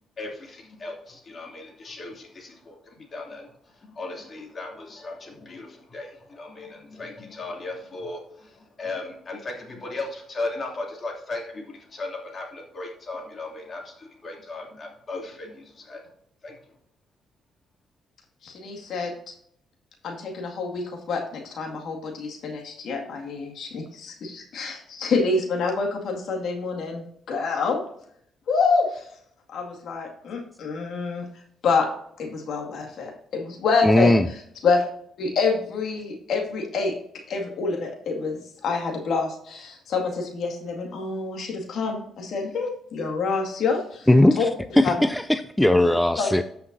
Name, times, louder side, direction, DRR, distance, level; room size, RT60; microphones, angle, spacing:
voice 1, 0.2-16.0 16.4-16.6, left 2 dB, 40° left, 0 dB, 2.9 m, -37 dB
voice 2, 18.4-19.1 20.0-27.8 28.5-28.9 29.5-31.3 31.6-31.9 32.2-34.1 34.6-34.8 35.2-36.9 37.3-44.1 44.4-44.5 44.8-45.0 46.2-46.3, left 4 dB, 65° left, 2 dB, 2.1 m, -27 dB
voice 3, 33.8-34.3 44.1-44.5 44.8-46.4, left 1 dB, 5° left, 10 dB, 0.4 m, -18 dB
14.0 x 5.7 x 2.7 m, 0.67 s
cardioid pair, 90°, 0 cm